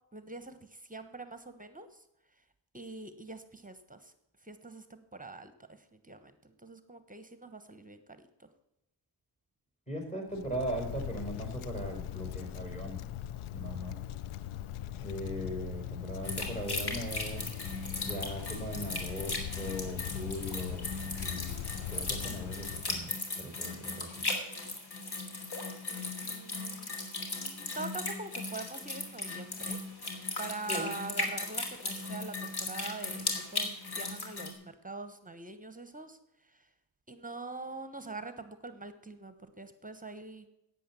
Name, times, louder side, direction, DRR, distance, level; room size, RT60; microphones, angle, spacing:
voice 1, 0.1-2.0 2.7-4.1 4.4-5.5 5.9-8.5 25.9-27.0 27.3-29.8 30.4-36.2 36.5-36.6 37.1-40.5, right 3 dB, 15° right, 10 dB, 1.2 m, -44 dB
voice 2, 9.9-13.0 13.5-14.0 15.0-17.5 18.0-20.9 21.2-21.6 21.9-24.1 30.7-30.9, equal, 15° left, 2 dB, 4.4 m, -39 dB
Wind, 10.3-23.1, left 12 dB, 85° left, 0.6 m, -41 dB
sound 1, 16.2-34.5, left 2 dB, 50° left, 3.0 m, -37 dB
10.0 x 9.0 x 7.1 m, 0.86 s
cardioid pair, 65°, 49 cm